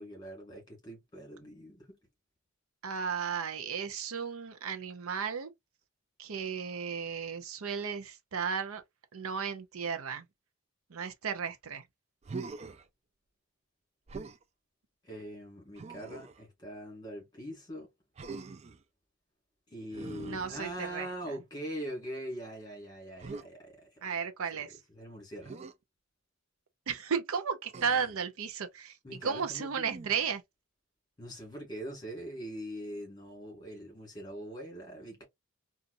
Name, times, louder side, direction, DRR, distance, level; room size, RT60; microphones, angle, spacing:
voice 1, 0.0-2.0 15.0-17.9 19.7-24.0 24.5-24.6 24.9-25.6 29.0-29.9 31.2-35.2, equal, 20° left, 2.2 m, -42 dB
voice 2, 2.8-5.5 6.2-8.8 9.1-10.2 10.9-11.8 20.2-21.1 24.0-24.8 26.9-29.0 29.2-30.4, right 6 dB, 75° right, 0.6 m, -34 dB
Human voice, 12.2-12.9 14.1-14.4 15.8-16.4 18.2-18.8 19.9-21.1 23.2-23.5 25.4-25.7 27.7-28.2 29.8-30.3, right 4 dB, 30° right, 0.3 m, -43 dB
3.9 x 2.4 x 2.5 m
head